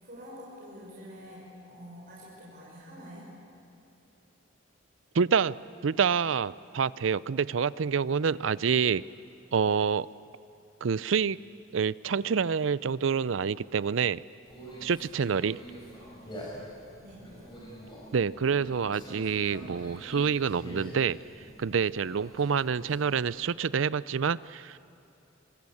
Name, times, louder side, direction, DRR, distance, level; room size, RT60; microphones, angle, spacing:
voice 1, 0.0-3.3 17.0-17.2, equal, 45° right, -5 dB, 5.7 m, -47 dB
voice 2, 5.1-5.5 5.8-9.0 9.5-10.1 10.8-11.4 11.7-14.2 14.8-15.6 18.1-21.2 21.6-24.8, right 6 dB, 70° right, 19 dB, 0.5 m, -27 dB
Conversation, 14.5-23.3, right 1 dB, 25° left, 6.9 m, -45 dB
25.0 x 22.5 x 8.5 m, 2.8 s
head